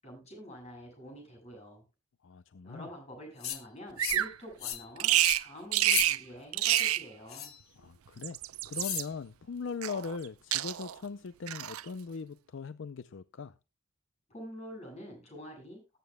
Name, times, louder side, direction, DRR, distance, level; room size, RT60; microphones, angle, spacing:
voice 1, 0.0-1.8 2.6-7.5 14.3-16.0, equal, 30° left, 7.5 m, -47 dB
voice 2, 2.2-2.9 7.8-8.4 8.6-13.5, left 5 dB, 60° left, 0.5 m, -40 dB
sound 1, 3.4-3.6 4.0-4.3 4.6-4.9 5.2-5.4 5.8-6.1 6.6-6.9 7.3-7.6 8.7-9.1, left 11 dB, 85° left, 1.6 m, -35 dB
Bird vocalization bird call bird song, 4.0-4.3 5.0-5.4 5.7-6.2 6.5-7.0 8.1-9.0 9.8-10.3 10.5-11.0 11.5-11.8, right 14 dB, 90° right, 0.5 m, -28 dB
20.0 x 9.1 x 2.2 m
head